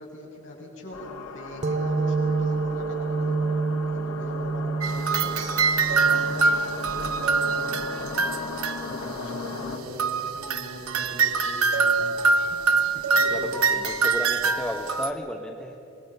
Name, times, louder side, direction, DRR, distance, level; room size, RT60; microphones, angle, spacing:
voice 1, 0.0-3.6 3.9-6.5 6.9-8.6 8.9-12.4 12.7-13.7, left 1 dB, 60° left, -3 dB, 6.3 m, -40 dB
sound 1, 0.9-9.8, left 4 dB, 80° left, 1.6 m, -38 dB
sound 2, 1.6-8.9, right 4 dB, 30° right, 0.6 m, -29 dB
sound 3, 4.8-9.5 10.0-15.1, right 4 dB, 80° right, 1.1 m, -24 dB
voice 2, 13.3-15.8, equal, 5° left, 1 dB, 1.0 m, -34 dB
26.0 x 21.0 x 5.4 m, 3.0 s
head